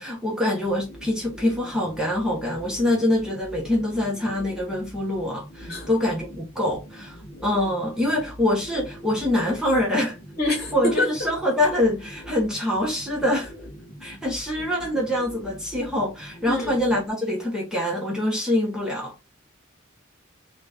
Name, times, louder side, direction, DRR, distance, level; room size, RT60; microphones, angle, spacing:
voice 1, 0.0-10.2 10.7-13.5 14.0-19.3, left 1 dB, 5° right, 0.9 m, -25 dB
sound 1, 0.6-17.1, equal, 30° left, 0.7 m, -43 dB
voice 2, 10.4-11.1 16.4-16.7, left 1 dB, 45° left, 1.4 m, -25 dB
4.0 x 2.4 x 3.3 m
head